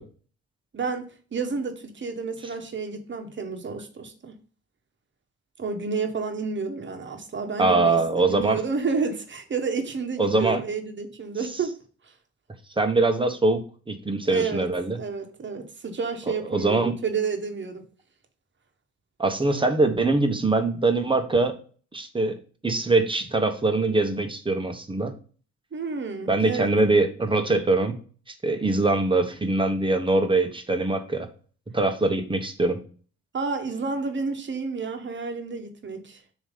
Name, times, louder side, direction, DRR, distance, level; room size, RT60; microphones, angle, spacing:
voice 1, 0.7-4.3 5.6-11.8 14.2-14.7 14.9-17.9 25.7-26.7 33.3-36.2, right 4 dB, 40° right, 1.4 m, -30 dB
voice 2, 7.6-8.6 10.2-10.6 12.8-15.0 16.5-16.9 19.2-21.5 21.9-22.4 22.6-25.1 26.3-27.9 28.4-31.3 31.7-32.8, right 2 dB, 15° right, 1.2 m, -23 dB
7.1 x 3.1 x 5.4 m
cardioid pair, 90°, 30 cm